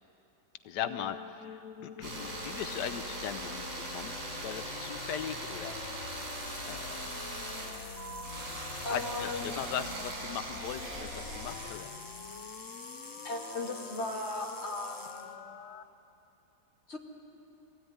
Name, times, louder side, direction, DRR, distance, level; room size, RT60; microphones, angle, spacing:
voice 1, 0.6-4.1 4.4-6.3 6.7-7.0 8.9-11.9, left 9 dB, 90° left, 10 dB, 1.3 m, -39 dB
sound 1, 0.8-15.8, left 9 dB, 65° left, 0.9 m, -47 dB
sound 2, 2.0-11.7, right 1 dB, 70° right, 6.0 m, -40 dB
sound 3, 6.1-10.4 11.1-15.4, left 2 dB, 15° left, 1.0 m, -49 dB
voice 2, 8.8-9.6 13.2-15.3 16.9-17.0, left 2 dB, 40° left, -1 dB, 2.8 m, -37 dB
23.5 x 16.5 x 9.5 m, 2.9 s
omnidirectional pair, 1.8 m